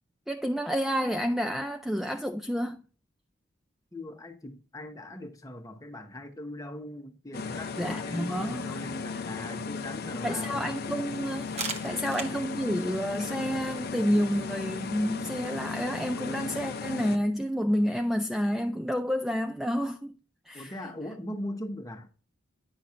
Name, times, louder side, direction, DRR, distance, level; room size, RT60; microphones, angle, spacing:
voice 1, 0.3-2.8 7.8-8.8 9.1-9.2 10.2-20.1 20.5-20.7, equal, ahead, 0.3 m, -29 dB
voice 2, 3.9-10.7 11.8-12.0 20.5-22.1, left 1 dB, 20° left, 1.0 m, -40 dB
sound 1, 7.3-17.2, left 5 dB, 50° left, 0.6 m, -36 dB
sound 2, 11.3-16.8, right 4 dB, 35° right, 1.0 m, -44 dB
9.6 x 6.0 x 2.5 m
head